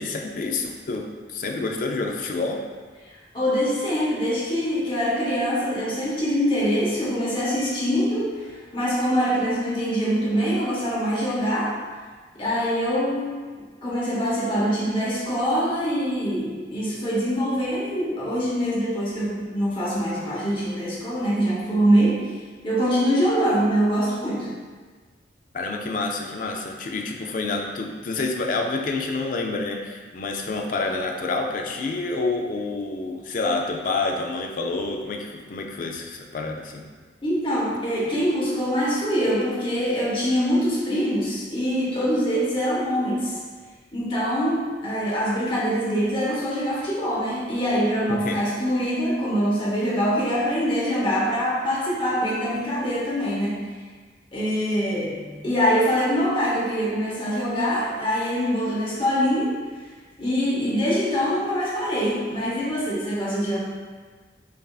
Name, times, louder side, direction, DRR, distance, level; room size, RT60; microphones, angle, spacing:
voice 1, 0.0-2.6 25.5-36.8 48.1-48.4, left 3 dB, 45° left, 2 dB, 0.4 m, -28 dB
voice 2, 3.3-11.8 12.3-13.5 13.8-22.3 22.6-24.5 37.2-43.4 43.9-53.6 54.3-59.6 60.2-63.6, equal, 30° left, -6 dB, 0.9 m, -24 dB
5.2 x 2.6 x 2.3 m, 1.5 s
head